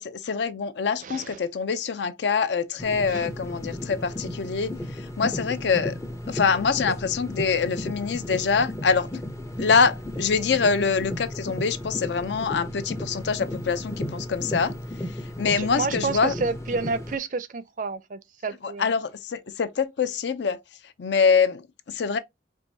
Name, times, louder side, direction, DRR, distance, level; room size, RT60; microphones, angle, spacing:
voice 1, 0.0-6.0 6.3-9.1 9.6-14.7 15.4-16.4 18.6-20.6 21.0-22.2, left 5 dB, 70° left, 0.5 m, -25 dB
voice 2, 1.0-1.4 3.1-3.3 15.6-18.9, right 4 dB, 45° right, 0.4 m, -30 dB
sound 1, 2.8-17.2, left 1 dB, 15° left, 0.4 m, -34 dB
4.7 x 2.6 x 2.7 m
head